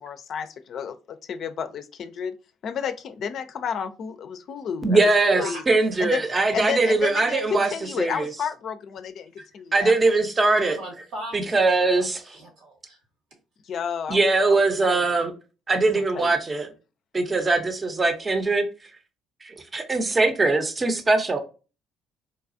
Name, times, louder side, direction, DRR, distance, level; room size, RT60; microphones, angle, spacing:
voice 1, 0.0-2.3 2.6-5.0 5.3-5.6 6.0-6.2 6.5-9.9 13.6-15.1 15.7-16.3, left 7 dB, 60° left, 9 dB, 0.4 m, -31 dB
voice 2, 4.8-7.7 8.0-8.3 9.7-10.8 11.3-12.2 14.1-15.3 15.7-16.7 17.1-18.7 19.4-21.4, right 3 dB, 30° right, 7 dB, 0.7 m, -21 dB
voice 3, 10.6-11.6 11.9-13.0, right 1 dB, 75° right, 1 dB, 1.3 m, -39 dB
4.0 x 2.3 x 2.6 m, 0.33 s
hypercardioid pair, 60°, 0 cm